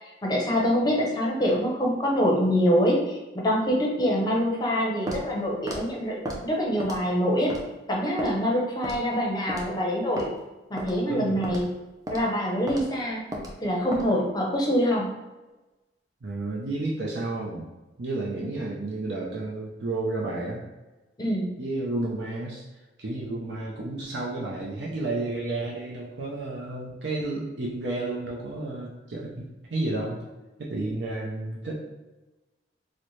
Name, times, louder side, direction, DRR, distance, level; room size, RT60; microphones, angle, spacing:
voice 1, 0.2-7.5 7.9-10.3 10.7-11.7 12.1-13.2 13.6-15.1 18.4-18.6 21.2-21.5, equal, 20° left, -2 dB, 0.6 m, -25 dB
Walk footsteps, 5.1-5.3 5.7-5.8 6.3-6.4 6.8-7.1 7.5-7.6 8.2-8.3 8.8-9.1 9.5-9.7 10.2-10.3 10.8-11.0 11.4-11.7 12.1-12.2 12.7-12.9 13.3-13.5 13.9-14.1, equal, 20° right, 0.4 m, -33 dB
voice 2, 11.1-11.6 16.2-17.7 18.0-20.6 21.6-22.6 23.0-30.2 30.6-31.7, right 2 dB, 65° right, -3 dB, 0.6 m, -31 dB
4.0 x 2.1 x 3.1 m, 1.1 s
head